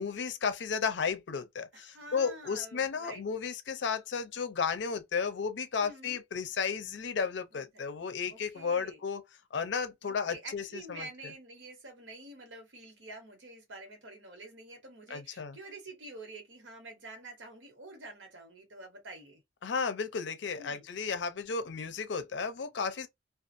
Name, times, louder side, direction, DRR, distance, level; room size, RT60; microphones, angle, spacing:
voice 1, 0.0-9.2 9.5-11.1 15.1-15.6 19.6-23.1, left 5 dB, 70° left, 0.5 m, -33 dB
voice 2, 1.7-3.2 5.8-6.2 7.5-7.8 8.3-9.0 10.0-19.4 20.6-20.8, right 2 dB, 90° right, 1.1 m, -48 dB
2.5 x 2.3 x 2.5 m
head